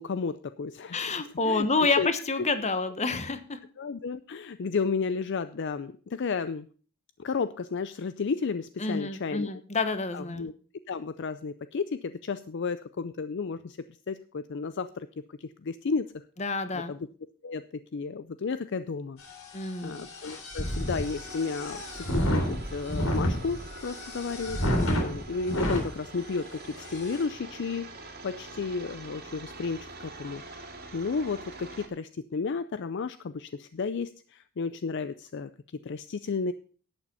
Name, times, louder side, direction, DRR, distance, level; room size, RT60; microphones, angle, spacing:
voice 1, 0.0-1.7 2.0-2.1 3.8-6.7 7.2-9.6 10.1-10.5 10.9-13.8 14.1-16.1 16.7-17.1 17.4-19.2 19.8-29.9 30.2-36.5, left 4 dB, 55° left, 13 dB, 0.4 m, -33 dB
voice 2, 0.9-3.6 8.8-10.5 16.4-16.9 19.5-20.0, left 3 dB, 30° left, 10 dB, 1.2 m, -28 dB
sound 1, 19.2-25.9 26.4-26.5 26.8-27.2, equal, 70° left, 3.4 m, -31 dB
sound 2, 20.6-31.9, right 3 dB, 45° right, 2.2 m, -45 dB
11.0 x 8.8 x 5.5 m, 0.41 s
head